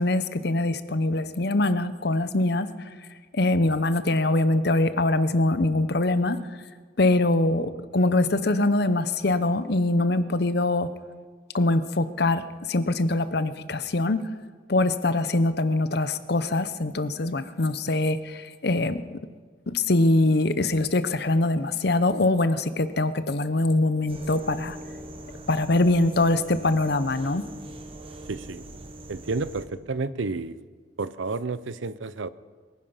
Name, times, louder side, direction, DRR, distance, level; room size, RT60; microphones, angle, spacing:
voice 1, 0.0-2.7 3.3-6.4 7.0-10.9 11.5-14.3 14.7-19.0 19.7-24.8 25.5-27.4, left 2 dB, 55° left, 13 dB, 0.8 m, -23 dB
sound 1, 24.1-29.6, right 1 dB, 30° right, 1.2 m, -42 dB
voice 2, 28.3-28.7 29.1-30.6 31.0-32.3, right 3 dB, 75° right, 16 dB, 0.7 m, -31 dB
23.0 x 10.5 x 5.7 m, 1.5 s
head